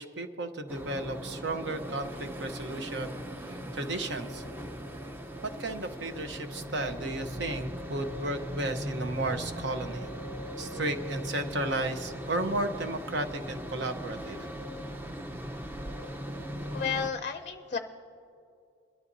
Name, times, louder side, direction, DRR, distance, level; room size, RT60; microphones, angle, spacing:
voice 1, 0.0-3.2 3.5-4.4 5.4-10.1 10.6-14.5, right 2 dB, 65° right, 7 dB, 0.9 m, -34 dB
sound 1, 0.7-17.1, equal, 10° right, 0.5 m, -39 dB
voice 2, 16.7-17.8, left 6 dB, 40° left, 8 dB, 0.5 m, -32 dB
22.5 x 13.0 x 2.7 m, 2.6 s
head